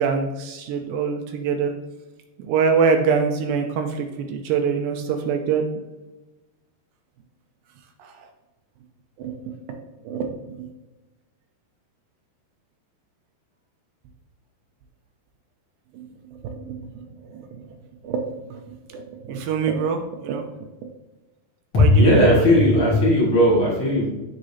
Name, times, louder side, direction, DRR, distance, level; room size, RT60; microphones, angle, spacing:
voice 1, 0.0-1.7 2.4-5.7 8.0-8.1 9.2-9.6 10.0-10.7 15.9-16.1 16.4-17.0 17.3-17.6 18.0-20.5 21.8-22.3, right 6 dB, 80° right, 4 dB, 2.2 m, -25 dB
voice 2, 21.7-24.1, left 1 dB, 45° left, -6 dB, 1.9 m, -16 dB
7.9 x 6.6 x 2.7 m, 1.1 s
omnidirectional pair, 4.7 m